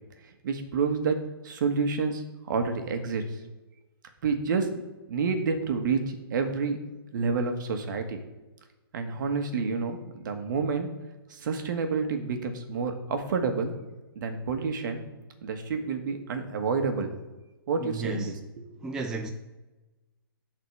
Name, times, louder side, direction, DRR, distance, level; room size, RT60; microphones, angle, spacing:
voice 1, 0.4-1.2 1.4-3.2 4.2-4.7 5.1-6.8 7.1-8.2 8.9-10.9 11.3-13.7 14.1-15.1 15.4-17.1 17.7-18.7, right 5 dB, 55° right, 1.5 m, -29 dB
voice 2, 17.8-18.3 18.8-19.3, right 3 dB, 5° right, 0.4 m, -33 dB
8.1 x 4.2 x 6.6 m
hypercardioid pair, 150°, 13 cm